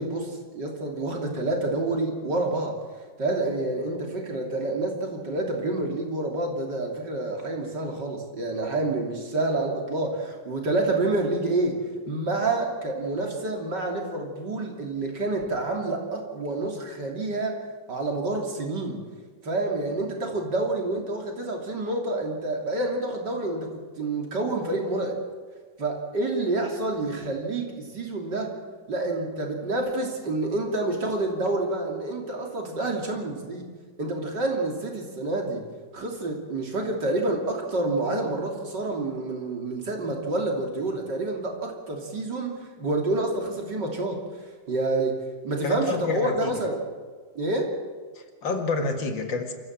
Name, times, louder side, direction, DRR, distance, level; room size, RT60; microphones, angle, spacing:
voice 1, 0.0-2.8 3.2-11.8 12.1-17.6 17.9-19.0 19.4-23.7 24.0-25.2 25.8-28.5 28.9-33.6 34.0-35.6 35.9-44.2 44.7-46.8 47.4-47.7, right 2 dB, 60° right, 1 dB, 3.6 m, -28 dB
voice 2, 45.6-46.6 48.2-49.5, left 3 dB, 75° left, 5 dB, 2.7 m, -28 dB
27.5 x 14.5 x 7.4 m, 1.5 s
omnidirectional pair, 2.1 m